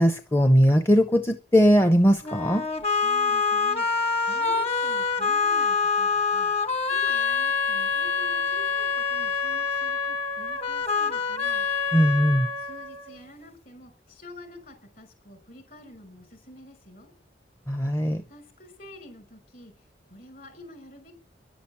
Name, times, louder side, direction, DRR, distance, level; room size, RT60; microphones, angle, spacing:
voice 1, 0.0-2.7 11.9-12.5 17.7-18.2, equal, 15° left, 8 dB, 0.6 m, -20 dB
sound 1, 2.2-13.2, left 5 dB, 35° left, 1.4 m, -26 dB
voice 2, 3.0-6.5 6.9-11.7 12.6-17.1 18.3-19.7 20.1-21.1, left 1 dB, 50° left, 7 dB, 5.8 m, -48 dB
11.0 x 11.0 x 8.5 m, 0.42 s
head